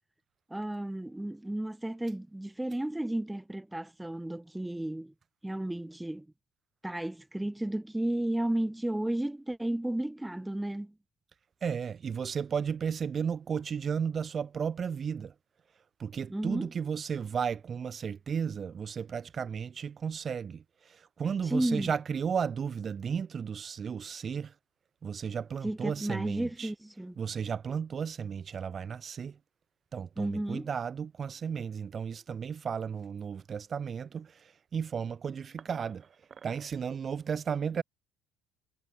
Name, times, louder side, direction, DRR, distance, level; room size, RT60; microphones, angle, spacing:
voice 1, 0.5-5.1 5.4-6.3 6.8-10.9 16.3-16.7 21.4-21.9 25.6-27.2 30.2-30.7, right 1 dB, 5° right, 1.2 m, -33 dB
voice 2, 11.6-15.3 16.0-24.5 25.0-26.7 27.2-29.4 29.9-36.1 36.4-37.8, right 7 dB, 35° right, 0.9 m, -34 dB
cardioid pair, 110°, 0 cm